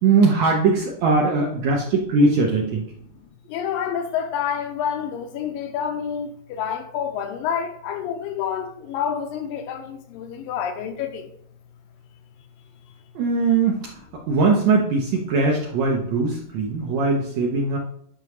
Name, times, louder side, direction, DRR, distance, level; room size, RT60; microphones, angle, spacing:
voice 1, 0.0-2.9 13.2-17.8, right 3 dB, 70° right, 1.8 m, -20 dB
voice 2, 3.5-11.3, left 8 dB, 85° left, 2.4 m, -28 dB
9.0 x 5.4 x 3.1 m
omnidirectional pair, 4.1 m